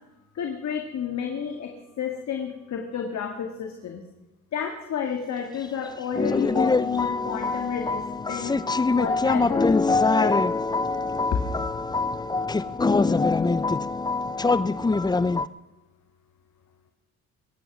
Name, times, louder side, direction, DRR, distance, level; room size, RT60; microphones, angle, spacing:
voice 1, 0.3-4.0 4.5-8.6 8.9-10.4, left 7 dB, 65° left, 4 dB, 2.0 m, -31 dB
sound 1, 6.2-15.5, left 3 dB, 15° left, 0.5 m, -23 dB
22.5 x 9.4 x 6.1 m, 1.1 s
cardioid pair, 90°, 30 cm